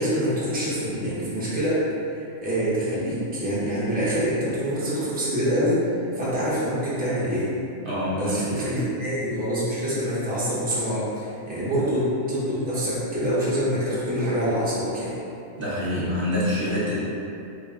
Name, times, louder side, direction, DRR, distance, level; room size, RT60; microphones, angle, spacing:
voice 1, 0.0-5.9 6.1-7.5 8.1-15.1, equal, 10° right, -9 dB, 0.6 m, -25 dB
voice 2, 7.8-8.7 15.6-17.1, left 1 dB, 45° right, -10 dB, 1.0 m, -26 dB
3.6 x 2.3 x 3.7 m, 2.6 s
omnidirectional pair, 1.5 m